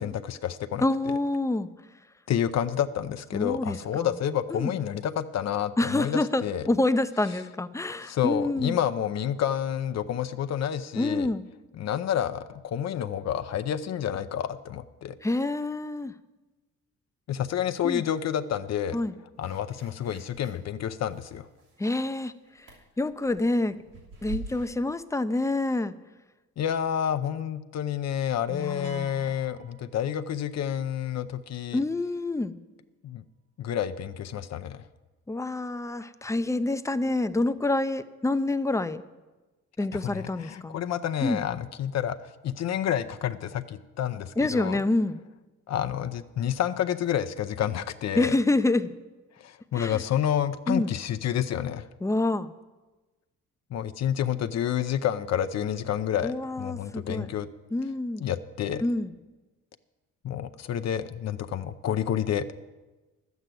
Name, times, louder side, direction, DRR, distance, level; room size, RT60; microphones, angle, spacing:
voice 1, 0.0-0.8 2.3-6.7 8.0-11.3 11.8-15.2 17.3-19.0 19.4-21.5 26.6-31.8 33.0-33.2 33.6-34.8 40.0-44.8 45.7-48.4 49.4-51.9 53.7-57.5 58.2-58.8 60.2-62.6, left 9 dB, 60° left, 10 dB, 0.6 m, -29 dB
voice 2, 0.8-1.7 3.3-4.1 4.5-4.7 5.8-8.8 10.9-11.5 15.2-16.1 17.8-18.0 18.9-19.2 21.8-22.7 23.0-23.8 24.2-25.9 28.5-29.4 31.7-32.6 35.3-39.0 39.8-40.8 41.2-41.4 44.4-45.2 48.1-48.9 49.7-50.0 50.7-50.9 52.0-52.5 56.2-57.3 57.7-58.3 58.8-59.1, left 2 dB, 10° left, 11 dB, 0.5 m, -27 dB
sound 1, 19.4-20.7 21.0-22.2 22.6-24.7, right 3 dB, 85° right, 3.1 m, -44 dB
sound 2, 28.8-30.7, right 11 dB, 55° right, 0.6 m, -51 dB
11.5 x 8.2 x 7.6 m, 1.2 s
cardioid pair, 90°, 30 cm